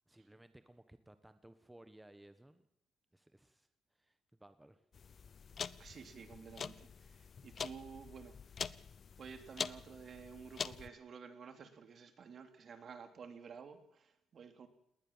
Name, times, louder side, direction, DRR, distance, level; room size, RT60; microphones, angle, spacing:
voice 1, 0.1-2.6 3.1-4.8, right 1 dB, 10° right, 11 dB, 1.3 m, -60 dB
sound 1, 4.9-10.9, left 6 dB, 45° left, 0.8 m, -45 dB
voice 2, 5.8-8.3 9.2-14.7, right 6 dB, 55° right, 8 dB, 3.0 m, -52 dB
19.5 x 19.5 x 7.4 m, 0.77 s
cardioid pair, 90°, 0 cm